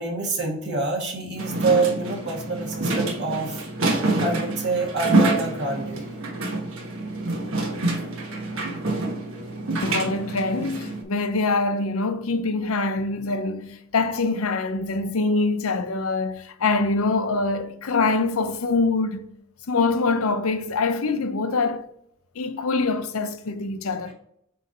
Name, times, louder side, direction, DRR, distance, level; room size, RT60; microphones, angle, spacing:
voice 1, 0.0-6.0, right 3 dB, 55° right, 1.9 m, -26 dB
sound 1, 1.4-11.0, right 2 dB, 70° right, 1.2 m, -26 dB
voice 2, 9.8-19.2 19.7-21.8 22.4-24.1, left 3 dB, 80° left, 0.6 m, -24 dB
7.6 x 3.2 x 4.2 m
head